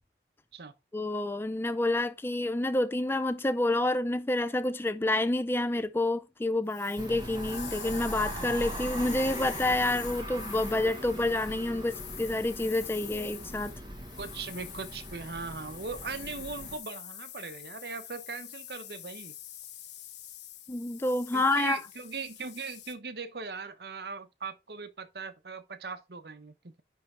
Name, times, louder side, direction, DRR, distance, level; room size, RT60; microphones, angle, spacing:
voice 1, 0.9-13.7 20.7-21.8, left 2 dB, 15° left, 0.4 m, -28 dB
sound 1, 6.7-23.0, left 12 dB, 80° left, 0.9 m, -45 dB
sound 2, 7.0-16.8, right 1 dB, 25° right, 1.4 m, -40 dB
voice 2, 14.2-19.3 21.3-26.8, right 4 dB, 65° right, 0.9 m, -39 dB
10.5 x 3.5 x 4.3 m
head